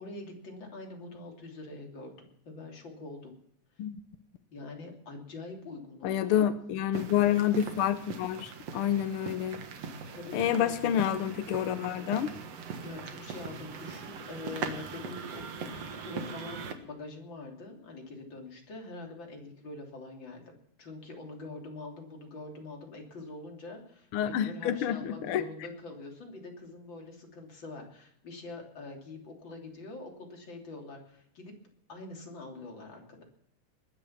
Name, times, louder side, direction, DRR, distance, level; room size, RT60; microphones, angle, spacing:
voice 1, 0.0-3.4 4.5-6.5 10.1-10.7 12.8-31.5 31.9-33.2, left 2 dB, 35° left, 1 dB, 3.6 m, -44 dB
voice 2, 6.0-9.6 10.3-12.3 24.1-25.4, left 10 dB, 80° left, 11 dB, 1.2 m, -28 dB
sound 1, 6.9-16.7, right 5 dB, 55° right, 2.4 m, -40 dB
21.0 x 10.0 x 5.8 m, 0.70 s
omnidirectional pair, 3.6 m